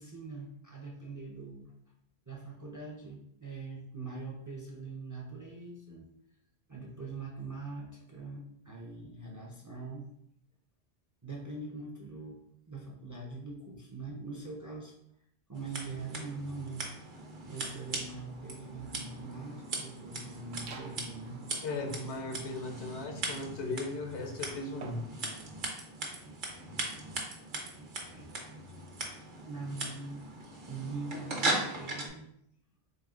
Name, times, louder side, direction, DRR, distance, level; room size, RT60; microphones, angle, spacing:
voice 1, 0.0-1.7 2.3-6.1 6.7-10.1 11.2-12.4 12.7-14.9 15.5-16.9 17.5-21.4 28.1-28.3 28.8-30.2 30.7-32.3, right 3 dB, 30° right, -1 dB, 0.3 m, -43 dB
Scissors, 15.5-32.1, right 2 dB, 55° right, 0.8 m, -39 dB
sound 1, 20.5-21.1 21.6-25.2, right 4 dB, 80° right, 0.8 m, -51 dB
voice 2, 21.6-25.1, left 2 dB, 90° left, 4 dB, 1.0 m, -37 dB
3.9 x 3.6 x 2.3 m, 0.72 s
omnidirectional pair, 1.1 m